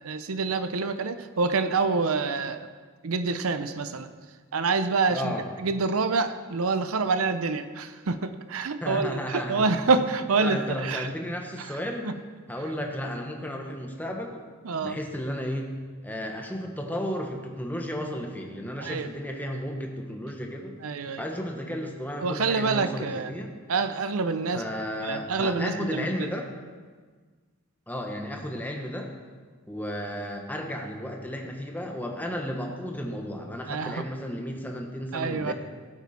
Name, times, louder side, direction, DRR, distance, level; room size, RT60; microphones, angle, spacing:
voice 1, 0.0-2.7 3.0-4.1 4.5-11.1 12.0-12.1 14.6-15.0 18.8-19.1 20.8-21.3 22.2-23.3 23.7-24.6 25.0-26.3 33.7-34.0 35.1-35.5, right 4 dB, 75° right, 11 dB, 0.6 m, -27 dB
voice 2, 5.1-5.4 8.8-9.7 10.4-12.1 12.5-14.4 14.8-15.7 16.0-20.8 21.2-23.5 24.5-26.5 27.9-29.1 29.7-35.5, equal, 10° left, 2 dB, 1.2 m, -33 dB
16.5 x 8.2 x 4.3 m, 1.5 s
head